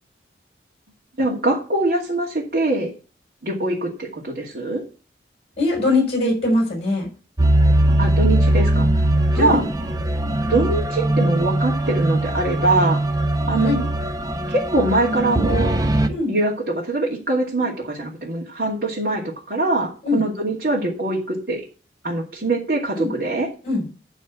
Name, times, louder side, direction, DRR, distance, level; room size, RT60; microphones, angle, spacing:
voice 1, 1.2-2.9 3.4-4.8 8.0-9.0 9.3-9.6 10.5-13.0 13.5-13.8 14.5-15.8 16.3-21.6 22.0-23.5, right 2 dB, 60° right, -5 dB, 2.4 m, -23 dB
voice 2, 5.6-7.1 9.3-9.7 13.6-13.8 16.1-16.3 20.0-20.2 23.0-23.1 23.6-23.9, left 2 dB, 35° left, 0 dB, 6.3 m, -21 dB
sound 1, 7.4-16.1, right 1 dB, 20° right, 0.6 m, -20 dB
12.5 x 4.2 x 8.2 m, 0.37 s
head